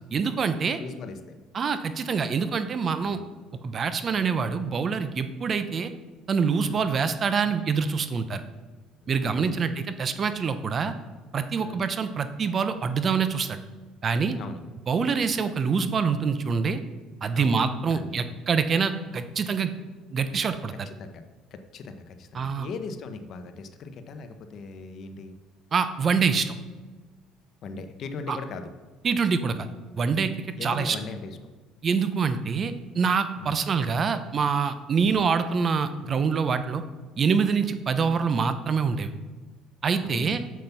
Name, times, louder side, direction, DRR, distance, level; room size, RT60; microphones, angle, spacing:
voice 1, 0.1-0.8 1.5-3.2 3.6-5.9 6.3-8.4 9.1-10.9 11.3-13.6 14.0-14.4 14.9-16.8 17.2-19.7 20.1-20.9 22.3-22.7 25.7-26.5 28.3-28.4 29.0-29.5 29.9-30.3 30.6-31.0 31.8-36.8 37.2-39.1 39.8-40.4, right 5 dB, 35° right, 11 dB, 0.6 m, -25 dB
voice 2, 0.8-1.4 3.0-3.2 6.7-6.8 9.2-9.7 11.6-11.9 14.4-14.6 17.3-18.4 20.8-21.2 21.5-25.4 27.6-28.7 30.6-31.4 33.4-33.6 35.1-35.3 40.0-40.4, left 4 dB, 50° left, 8 dB, 1.0 m, -39 dB
7.6 x 7.2 x 5.9 m, 1.3 s
cardioid pair, 115°, 0 cm